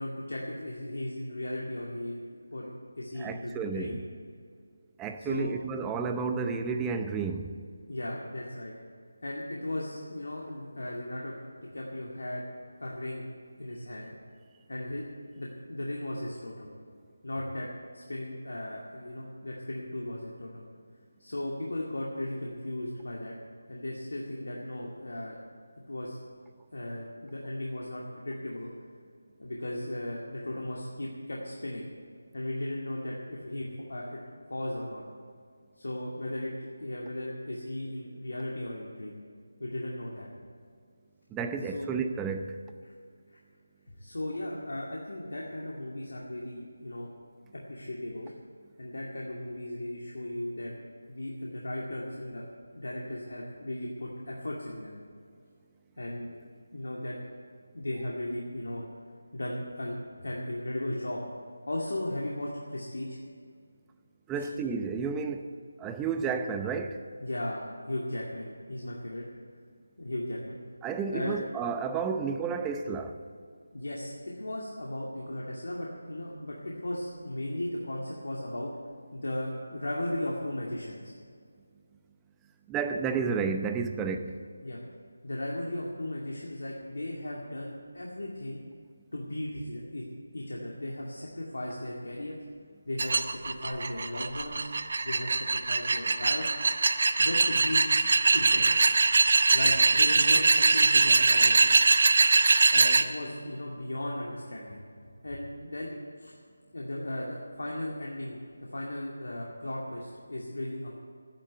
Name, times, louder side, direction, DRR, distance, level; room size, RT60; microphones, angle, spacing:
voice 1, 0.0-4.0 5.2-5.5 7.9-8.7 9.2-12.5 12.8-13.2 13.6-14.2 14.7-15.0 15.4-16.7 17.2-17.7 17.9-20.6 21.2-23.3 23.7-25.4 25.9-26.2 26.7-28.7 29.4-31.8 32.3-34.2 34.5-35.0 35.8-36.5 36.8-39.2 39.6-40.3 41.7-41.9 42.8-42.9 43.9-47.1 47.5-48.3 48.8-50.7 51.1-52.5 52.7-54.9 56.0-56.4 56.7-57.2 57.7-58.8 59.3-61.2 61.7-63.2 64.4-64.5 67.2-69.2 70.0-70.6 71.1-71.4 73.7-78.7 79.1-81.1 84.6-84.8 85.2-88.6 89.1-90.1 90.3-92.4 92.8-94.7 95.0-96.5 97.2-97.8 98.3-98.7 99.5-101.7 102.7-106.3 106.7-108.4 108.7-110.9, left 1 dB, 75° left, -3 dB, 2.3 m, -36 dB
voice 2, 3.2-4.0 5.0-7.5 41.3-42.6 64.3-65.5 65.8-67.0 70.8-73.1 82.7-84.3, right 5 dB, 10° right, 6 dB, 0.6 m, -31 dB
sound 1, 93.0-103.0, right 3 dB, 50° right, 0.8 m, -22 dB
12.0 x 10.0 x 9.4 m, 2.2 s
figure-of-eight pair, 165°, 0 cm